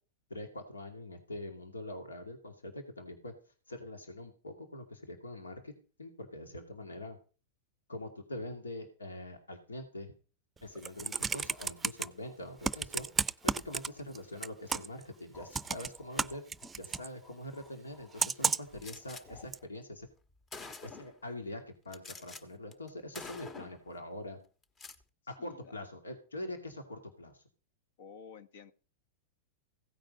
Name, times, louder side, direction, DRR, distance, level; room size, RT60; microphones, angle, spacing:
voice 1, 0.3-3.3 3.7-5.7 6.0-7.2 7.9-10.1 10.6-13.1 13.4-16.4 16.8-20.1 20.8-24.4 25.3-27.4, left 1 dB, 90° left, 5 dB, 2.4 m, -44 dB
Computer keyboard, 10.6-12.0 12.6-14.2 14.4-15.0 15.5-17.1 18.2-18.8 19.5-19.6, right 5 dB, 15° right, 0.6 m, -32 dB
sound 1, 11.5-14.4 14.8-19.7, left 4 dB, 40° left, 2.0 m, -60 dB
Gunshot gunfire, 18.8-19.2 20.1-20.2 20.5-21.2 21.9-22.4 22.7-22.9 23.1-23.8 24.6-25.0, left 3 dB, 25° left, 1.6 m, -46 dB
voice 2, 25.4-25.7 28.0-28.7, left 6 dB, 65° left, 13 dB, 1.5 m, -51 dB
16.0 x 9.1 x 5.2 m, 0.37 s
hypercardioid pair, 100°, 0 cm